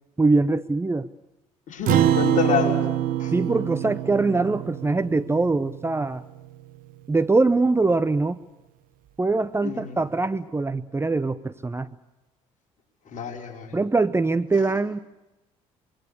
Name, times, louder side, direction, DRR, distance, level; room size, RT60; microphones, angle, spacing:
voice 1, 0.2-1.1 3.3-6.2 7.1-8.4 9.2-11.9 13.7-15.0, right 3 dB, 15° right, 12 dB, 0.8 m, -23 dB
voice 2, 1.7-2.9 3.2-3.3 9.6-10.0 13.1-13.8, left 6 dB, 50° left, 2 dB, 5.4 m, -27 dB
Acoustic guitar, 1.9-6.5, right 11 dB, 55° right, 1.4 m, -25 dB
25.5 x 23.0 x 6.9 m, 1.0 s
figure-of-eight pair, 50°, 17 cm